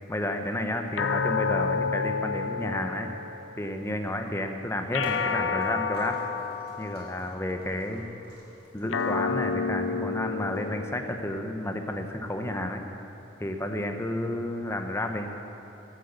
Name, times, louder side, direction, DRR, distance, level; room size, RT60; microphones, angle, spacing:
voice 1, 0.1-3.1 3.6-6.2 6.8-8.0 8.7-12.8 13.4-15.3, left 1 dB, 15° left, 5 dB, 0.9 m, -31 dB
sound 1, 1.0-3.6 4.9-7.5 8.9-11.5, left 5 dB, 90° left, 0.6 m, -30 dB
sound 2, 5.0-10.9, equal, 50° right, 3.6 m, -44 dB
13.0 x 8.5 x 8.1 m, 2.9 s
head